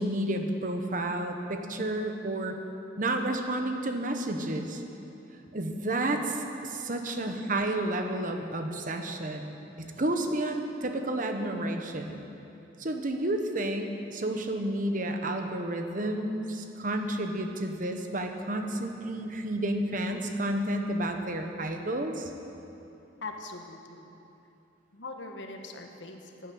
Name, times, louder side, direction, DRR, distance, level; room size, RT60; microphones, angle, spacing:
voice 1, 0.0-2.6 3.0-4.8 5.5-9.6 10.0-12.2 12.8-22.3, right 1 dB, 45° right, 5 dB, 1.2 m, -31 dB
voice 2, 23.2-24.2 24.9-26.5, left 3 dB, 75° left, 3 dB, 1.4 m, -42 dB
12.0 x 10.5 x 8.6 m, 2.9 s
head